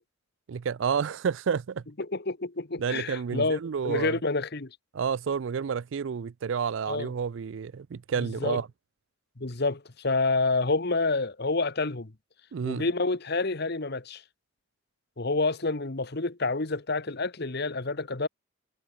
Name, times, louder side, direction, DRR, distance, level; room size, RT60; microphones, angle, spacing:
voice 1, 0.5-1.8 2.8-4.2 4.9-8.7 12.5-12.9, right 6 dB, 65° right, 0.4 m, -30 dB
voice 2, 2.0-4.8 6.9-7.1 8.2-8.6 9.4-12.1 12.6-14.2 15.2-18.3, left 3 dB, 55° left, 1.3 m, -28 dB
head